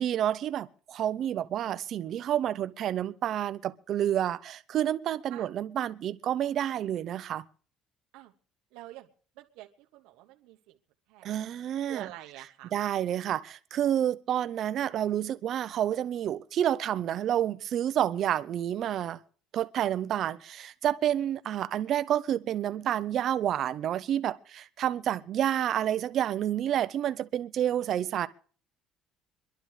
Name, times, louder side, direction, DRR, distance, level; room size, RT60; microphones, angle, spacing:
voice 1, 0.0-7.4 11.2-12.1 12.4-19.2 19.5-28.3, right 11 dB, 50° right, 0.6 m, -29 dB
voice 2, 8.7-9.1 9.4-9.7 9.9-10.6 11.1-11.3 11.9-12.7, right 16 dB, 90° right, 1.0 m, -46 dB
26.0 x 11.5 x 3.2 m
cardioid pair, 140°, 0 cm